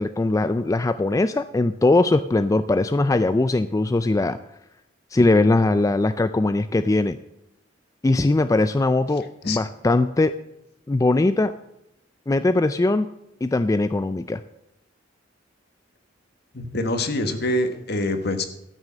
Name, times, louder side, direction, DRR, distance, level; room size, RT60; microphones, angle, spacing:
voice 1, 0.0-4.4 5.1-7.2 8.0-10.3 10.9-11.5 12.3-13.1 13.4-14.4, left 2 dB, 15° left, 11 dB, 0.3 m, -20 dB
voice 2, 16.5-18.5, left 1 dB, 60° left, 8 dB, 1.3 m, -25 dB
13.0 x 6.3 x 7.3 m, 0.83 s
head